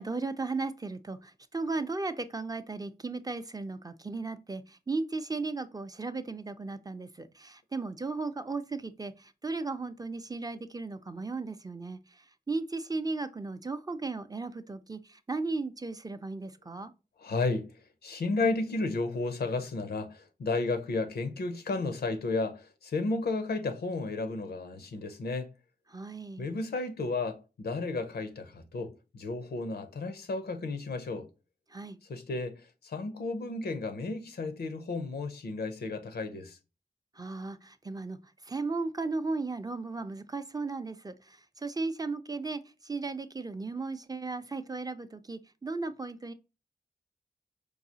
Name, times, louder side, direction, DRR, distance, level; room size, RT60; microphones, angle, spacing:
voice 1, 0.0-12.0 12.5-16.9 25.9-26.5 31.7-32.0 37.2-38.2 38.5-46.3, right 3 dB, 25° right, 0.4 m, -36 dB
voice 2, 17.2-17.7 18.0-25.5 26.4-31.3 32.0-36.6, left 3 dB, 90° left, 0.6 m, -33 dB
4.6 x 2.4 x 2.7 m
cardioid pair, 50°, 16 cm